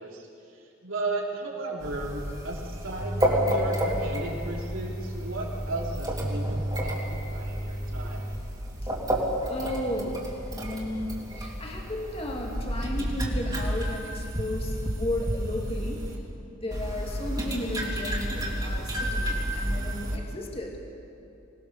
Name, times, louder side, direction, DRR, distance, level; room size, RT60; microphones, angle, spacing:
voice 1, 0.0-8.3, right 2 dB, 70° right, -2 dB, 3.5 m, -35 dB
sound 1, 1.8-16.1 16.7-20.2, equal, 20° right, 3.0 m, -30 dB
voice 2, 9.4-16.1 16.5-20.8, left 1 dB, 30° left, 0 dB, 2.2 m, -34 dB
25.0 x 19.5 x 6.9 m, 2.7 s
head